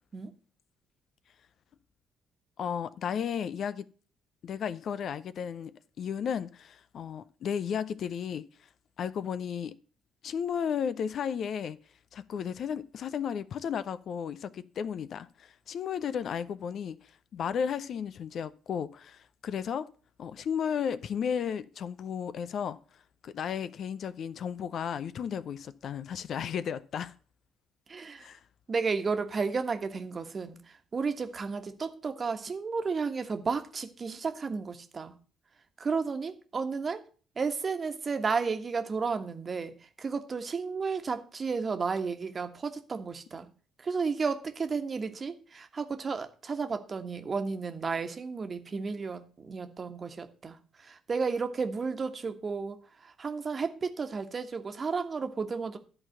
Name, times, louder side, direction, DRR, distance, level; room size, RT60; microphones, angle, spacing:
voice 1, 2.6-3.9 4.4-8.5 9.0-9.8 10.2-11.8 12.1-17.0 17.3-19.9 20.2-22.8 23.2-27.1 28.2-28.4, left 7 dB, 55° left, 0.5 m, -34 dB
voice 2, 27.9-28.3 28.7-30.6 30.9-35.1 35.8-37.0 37.4-43.5 43.8-50.6 50.8-52.8 53.0-55.8, right 5 dB, 40° right, 1.4 m, -32 dB
11.0 x 4.0 x 7.7 m
hypercardioid pair, 50°, 0 cm